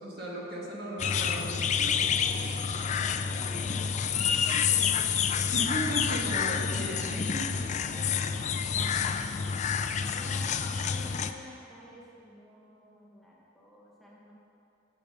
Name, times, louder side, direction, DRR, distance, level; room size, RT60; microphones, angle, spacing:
voice 1, 0.0-2.0 5.5-7.6, right 1 dB, 55° right, -3 dB, 2.0 m, -36 dB
sound 1, 1.0-11.3, left 7 dB, 35° left, 0.4 m, -28 dB
voice 2, 2.1-5.5 6.3-7.3 7.9-8.6 10.0-14.3, equal, ahead, -5 dB, 1.1 m, -50 dB
9.0 x 7.8 x 6.7 m, 2.8 s
head